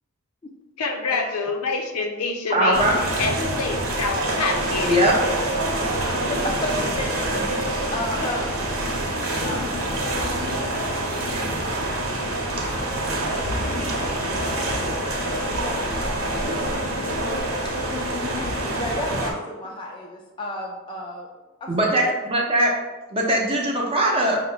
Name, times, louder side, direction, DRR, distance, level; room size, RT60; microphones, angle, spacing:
voice 1, 0.8-2.9 3.2-5.0, left 4 dB, 90° left, 4 dB, 0.6 m, -26 dB
voice 2, 2.5-3.0 4.8-5.2 12.6-12.7 21.7-22.7 23.1-24.4, right 1 dB, 25° right, -1 dB, 0.7 m, -20 dB
sound 1, 2.7-19.3, right 1 dB, 70° right, 1.0 m, -26 dB
voice 3, 6.3-8.8 9.4-9.8 13.0-14.2 14.6-15.1 15.6-21.3 21.6-22.1, left 1 dB, 20° left, -1 dB, 0.4 m, -34 dB
5.6 x 2.1 x 3.9 m, 1.1 s
head